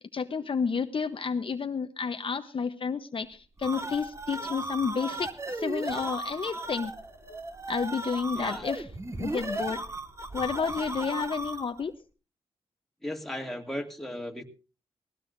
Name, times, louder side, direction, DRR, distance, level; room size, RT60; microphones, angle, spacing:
voice 1, 0.1-6.9 7.3-7.4 7.7-8.8 9.2-9.8 10.3-11.9, left 5 dB, 50° left, 7 dB, 0.9 m, -31 dB
sound 1, 3.3-11.8, right 2 dB, 25° right, 1.7 m, -36 dB
voice 2, 8.3-8.7 13.0-14.4, left 1 dB, ahead, 2 dB, 2.5 m, -36 dB
20.0 x 16.5 x 2.6 m, 0.33 s
cardioid pair, 70°, 12 cm